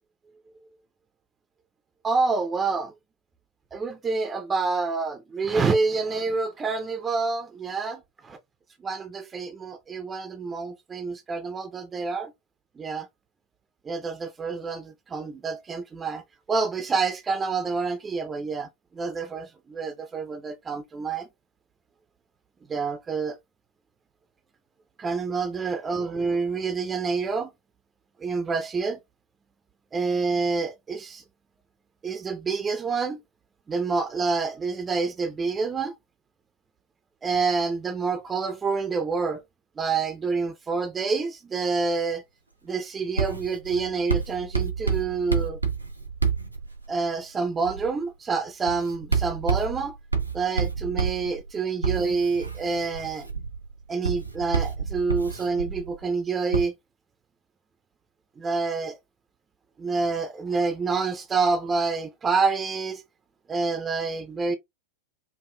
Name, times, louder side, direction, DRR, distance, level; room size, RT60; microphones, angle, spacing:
voice 1, 2.0-2.9 3.7-8.4 8.8-12.3 12.8-13.1 13.9-16.2 16.5-18.7 18.9-21.3 22.7-23.4 25.0-27.5 28.2-29.0 29.9-31.2 32.0-33.2 33.7-35.9 37.2-39.4 39.8-42.2 42.6-45.6 46.9-50.0 50.3-53.3 53.9-56.7 58.4-59.0 59.8-63.0 63.5-64.6, right 4 dB, 20° right, 0.5 m, -27 dB
Writing, 43.2-47.1 47.6-48.0 48.7-56.0 56.5-56.7, right 5 dB, 85° right, 0.8 m, -29 dB
4.7 x 2.4 x 2.3 m
figure-of-eight pair, 90°, 0 cm